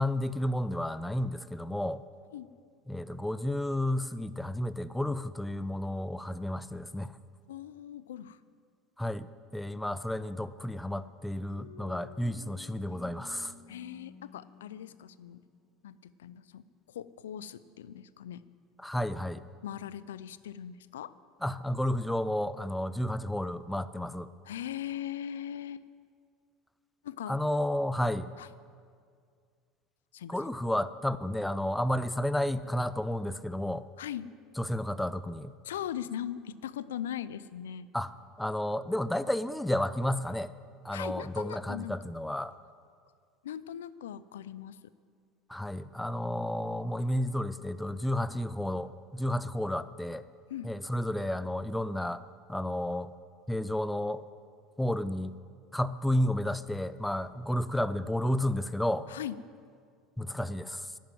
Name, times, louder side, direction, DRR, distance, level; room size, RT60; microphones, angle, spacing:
voice 1, 0.0-2.0 2.9-7.1 9.0-13.5 18.8-19.4 21.4-24.3 27.3-28.3 30.3-33.8 34.6-35.5 37.9-38.1 38.4-40.5 40.8-42.5 45.5-50.2 50.6-52.2 52.5-53.1 53.5-54.2 54.8-55.3 55.7-59.1 60.2-60.9, left 1 dB, 5° left, 14 dB, 0.6 m, -31 dB
voice 2, 7.5-8.4 13.7-15.4 15.8-18.4 19.6-21.1 24.5-25.9 27.0-27.4 28.4-28.5 30.1-30.4 34.0-34.3 35.6-37.9 40.9-41.9 43.4-44.8 50.5-50.7 59.1-59.4, left 10 dB, 80° left, 17 dB, 0.5 m, -40 dB
sound 1, 11.5-16.2, left 7 dB, 40° left, 2.0 m, -53 dB
11.5 x 9.4 x 9.2 m, 2.1 s
hypercardioid pair, 75°, 0 cm